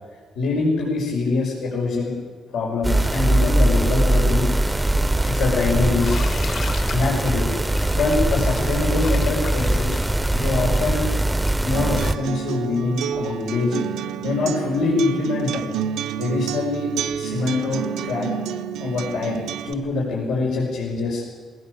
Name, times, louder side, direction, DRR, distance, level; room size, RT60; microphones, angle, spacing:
voice 1, 0.3-2.1 2.5-4.5 5.2-6.1 6.9-7.5 7.9-10.0 10.3-11.1 11.6-13.8 14.2-15.7 16.2-18.3 18.8-21.2, left 3 dB, 85° left, -4 dB, 6.1 m, -24 dB
sound 1, 2.8-12.1, right 1 dB, 10° right, 0.7 m, -21 dB
Bathtub (filling or washing), 6.0-11.7, left 5 dB, 60° left, 3.3 m, -36 dB
Acoustic guitar, 11.7-19.7, right 9 dB, 90° right, 0.9 m, -29 dB
20.0 x 18.5 x 8.3 m, 1.5 s
cardioid pair, 90°, 0 cm